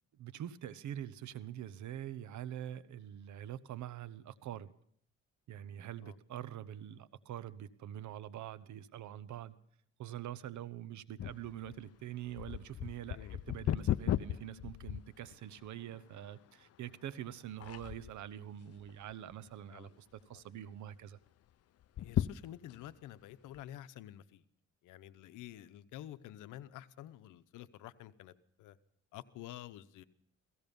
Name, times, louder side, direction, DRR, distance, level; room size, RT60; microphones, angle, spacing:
voice 1, 0.2-4.7 5.5-9.5 10.0-21.2, right 11 dB, 70° right, 1.0 m, -45 dB
sound 1, 11.2-15.7 16.2-16.3 17.0-17.3 17.6-18.3 18.8-19.5 19.9-20.0 20.2-20.3 21.8-22.9 23.5-23.6, left 11 dB, 55° left, 0.6 m, -36 dB
voice 2, 22.0-24.4 24.8-28.8 29.1-30.0, left 13 dB, 90° left, 0.9 m, -50 dB
17.0 x 15.5 x 5.4 m
cardioid pair, 90°, 30 cm